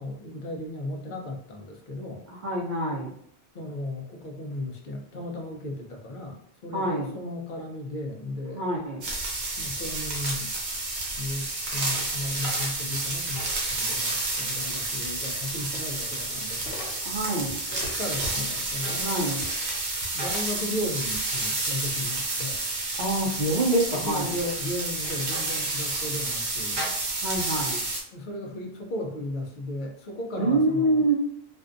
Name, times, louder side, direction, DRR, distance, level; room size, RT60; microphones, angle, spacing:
voice 1, 0.0-2.2 3.5-8.6 9.6-10.5 11.2-16.6 17.7-19.0 20.1-22.6 23.9-26.8 28.1-31.0, left 1 dB, 60° left, 2 dB, 0.6 m, -35 dB
voice 2, 2.3-3.1 6.7-7.1 8.5-9.0 17.0-17.6 18.9-19.5 23.0-24.3 27.2-27.8 30.4-31.1, right 1 dB, 55° right, -5 dB, 0.6 m, -26 dB
sound 1, 9.0-28.0, right 2 dB, 80° right, 1.0 m, -30 dB
sound 2, 14.7-14.8 15.1-17.3 17.7-18.7, left 3 dB, 85° left, 0.9 m, -42 dB
2.5 x 2.2 x 2.4 m, 0.62 s
omnidirectional pair, 1.0 m